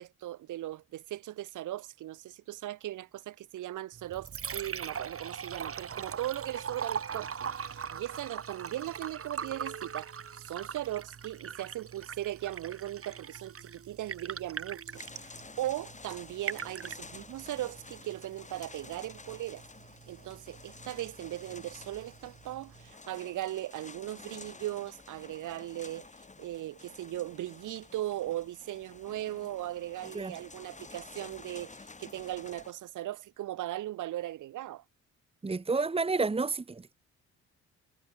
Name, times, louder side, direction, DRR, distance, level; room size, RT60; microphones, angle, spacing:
voice 1, 0.0-14.8 15.2-19.6 20.1-26.1 26.4-34.8, right 14 dB, 85° right, 5.7 m, -38 dB
Liquid, 3.9-22.9, right 7 dB, 50° right, 7.9 m, -42 dB
sound 1, 14.9-32.7, left 3 dB, 25° left, 5.5 m, -51 dB
voice 2, 35.4-36.9, right 4 dB, 20° right, 1.5 m, -30 dB
cardioid pair, 90°, 30 cm